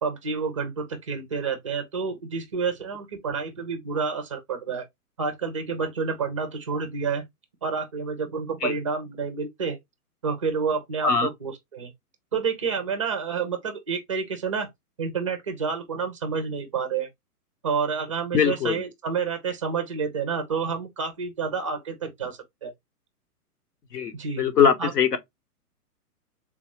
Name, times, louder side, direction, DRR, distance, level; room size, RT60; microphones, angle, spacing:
voice 1, 0.0-4.8 5.2-7.2 7.6-9.8 10.2-11.9 12.3-14.7 15.0-17.1 17.6-22.7 24.1-24.4 24.8-25.2, right 5 dB, 25° right, 0.4 m, -29 dB
voice 2, 18.3-18.8 23.9-25.2, left 7 dB, 80° left, 1.0 m, -21 dB
3.4 x 2.6 x 3.1 m
hypercardioid pair, 135°, 47 cm